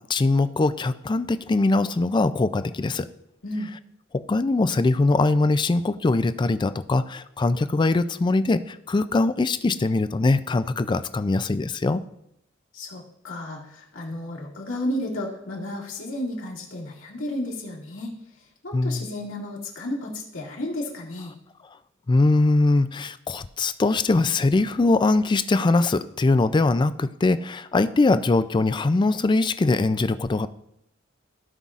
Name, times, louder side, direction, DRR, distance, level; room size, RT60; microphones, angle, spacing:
voice 1, 0.1-3.1 4.1-12.0 18.7-19.0 22.1-30.5, left 2 dB, 25° left, 13 dB, 0.3 m, -22 dB
voice 2, 12.7-18.1 18.6-21.3, left 1 dB, 80° left, -3 dB, 2.2 m, -32 dB
16.0 x 5.5 x 2.5 m, 0.78 s
head